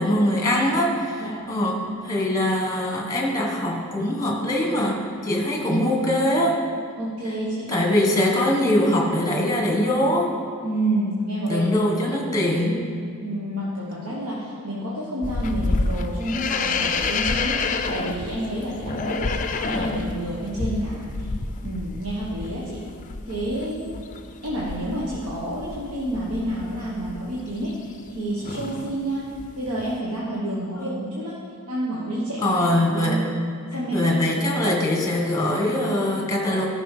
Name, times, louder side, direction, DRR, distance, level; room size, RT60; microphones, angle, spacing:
voice 1, 0.0-6.6 7.7-10.3 11.5-12.8 30.8-30.9 32.4-33.2 33.9-36.7, left 1 dB, 15° left, 0 dB, 1.5 m, -22 dB
voice 2, 7.0-7.9 10.6-11.7 13.2-21.3 21.6-22.8 23.2-23.9 24.4-29.3 29.5-31.4 31.7-32.6 33.0-33.2 33.7-34.7, right 1 dB, 80° right, -6 dB, 1.4 m, -29 dB
sound 1, 15.2-28.2 28.4-29.0 29.3-30.0, left 3 dB, 35° left, 0.5 m, -29 dB
13.5 x 6.0 x 5.0 m, 2.2 s
head